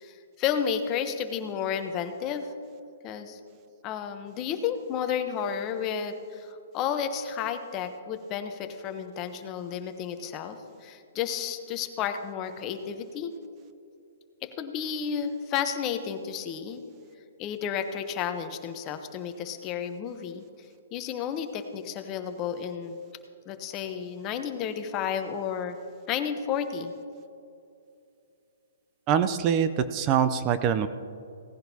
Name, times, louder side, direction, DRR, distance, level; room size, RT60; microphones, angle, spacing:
voice 1, 0.0-2.5 3.0-3.4 3.8-13.3 14.4-16.8 17.4-20.4 20.9-23.0 23.5-25.8 26.1-26.9, left 8 dB, 25° left, 8 dB, 0.8 m, -32 dB
voice 2, 29.1-30.9, right 8 dB, 25° right, 11 dB, 0.4 m, -24 dB
17.0 x 10.5 x 2.8 m, 2.6 s
hypercardioid pair, 155°, 0 cm